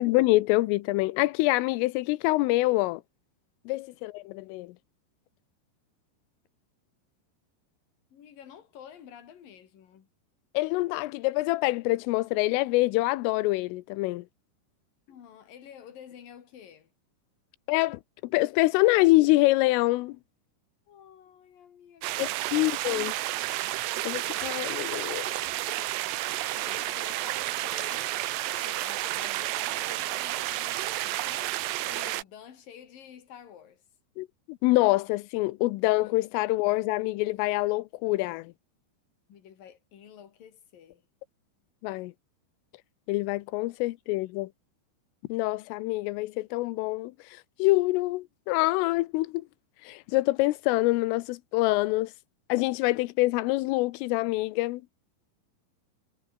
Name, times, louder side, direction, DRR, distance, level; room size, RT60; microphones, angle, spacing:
voice 1, 0.0-3.0 3.7-4.7 10.5-14.2 17.7-18.0 18.3-20.2 22.2-23.1 24.1-25.3 34.2-38.5 41.8-42.1 43.1-44.5 45.3-47.1 47.6-49.4 49.9-52.1 52.5-54.8, left 20 dB, 90° left, 3.4 m, -25 dB
voice 2, 8.1-10.1 15.1-16.9 20.9-22.8 25.8-25.9 26.5-28.2 28.6-33.8 39.3-41.0, left 9 dB, 50° left, 4.0 m, -50 dB
sound 1, 22.0-32.2, right 16 dB, 70° right, 2.9 m, -31 dB
omnidirectional pair, 5.6 m